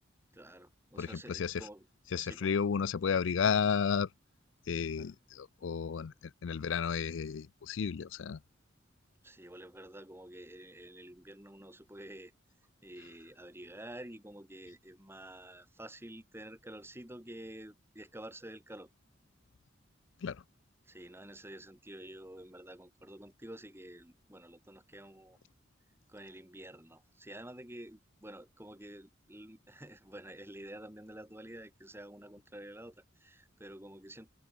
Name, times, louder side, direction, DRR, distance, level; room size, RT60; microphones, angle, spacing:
voice 1, 0.3-1.8 2.2-2.5 5.0-5.1 9.2-12.3 12.8-18.9 20.8-25.4 26.1-34.3, right 1 dB, 15° right, 5.0 m, -49 dB
voice 2, 1.0-1.7 2.1-4.1 4.7-6.1 6.4-8.4 20.2-20.4, left 6 dB, 75° left, 0.4 m, -32 dB
head